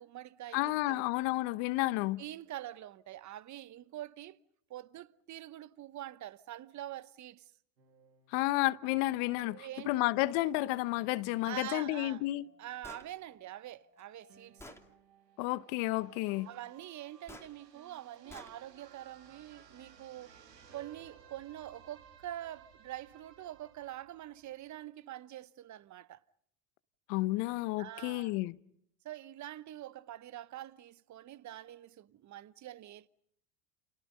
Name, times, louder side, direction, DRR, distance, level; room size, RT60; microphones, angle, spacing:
voice 1, 0.0-1.0 2.2-4.4 4.7-7.5 9.4-9.9 11.4-12.2 12.6-14.8 16.5-20.4 20.7-26.2 27.8-28.4 29.0-33.1, right 13 dB, 35° right, 1.0 m, -45 dB
voice 2, 0.5-2.2 8.3-12.4 15.4-16.5 27.1-28.6, left 18 dB, 60° left, 1.0 m, -31 dB
sound 1, 7.8-24.9, right 7 dB, 90° right, 2.8 m, -61 dB
Gunshot gunfire, 12.8-13.1 14.0-14.1 14.6-14.8 17.3-17.5 18.3-18.5, left 1 dB, 5° left, 2.8 m, -49 dB
29.5 x 29.5 x 5.4 m
hypercardioid pair, 80°, 49 cm